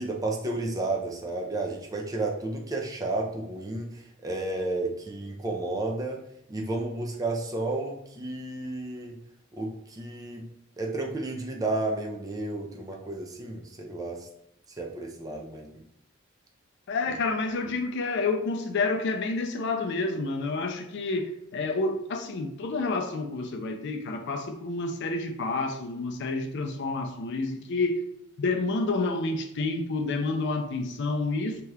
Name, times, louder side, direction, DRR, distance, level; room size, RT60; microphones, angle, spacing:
voice 1, 0.0-6.2 6.5-9.2 9.5-10.5 10.8-14.3 14.8-15.8, right 2 dB, 15° right, 0 dB, 0.4 m, -32 dB
voice 2, 16.9-28.0 28.4-31.6, left 3 dB, 60° left, 5 dB, 0.4 m, -29 dB
2.8 x 2.3 x 3.2 m, 0.79 s
head